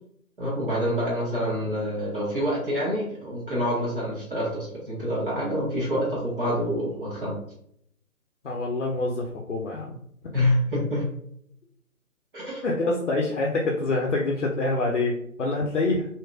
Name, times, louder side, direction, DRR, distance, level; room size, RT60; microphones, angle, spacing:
voice 1, 0.4-7.3 10.3-11.0 12.3-12.6, equal, 35° right, -6 dB, 1.2 m, -27 dB
voice 2, 8.4-10.0 12.6-16.1, left 2 dB, 55° left, -1 dB, 0.6 m, -26 dB
3.0 x 2.7 x 2.3 m, 0.69 s
figure-of-eight pair, 145°, 44 cm